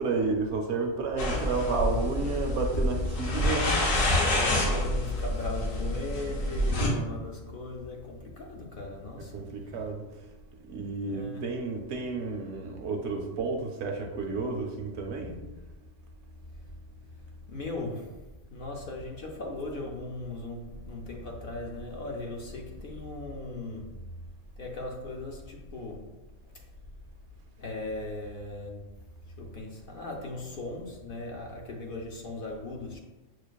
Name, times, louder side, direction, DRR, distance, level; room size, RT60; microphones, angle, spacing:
voice 1, 0.0-4.1 6.5-6.8 9.2-10.3 10.6-15.4, right 4 dB, 65° right, 0.8 m, -31 dB
sound 1, 1.2-6.9, left 1 dB, 85° left, 1.2 m, -27 dB
voice 2, 1.3-2.1 2.4-2.5 4.3-9.9 11.0-11.5 16.5-16.6 17.1-24.1 24.6-26.2 26.5-26.7 27.6-33.0, left 2 dB, 60° left, 0.6 m, -38 dB
6.3 x 2.4 x 2.2 m
omnidirectional pair, 1.3 m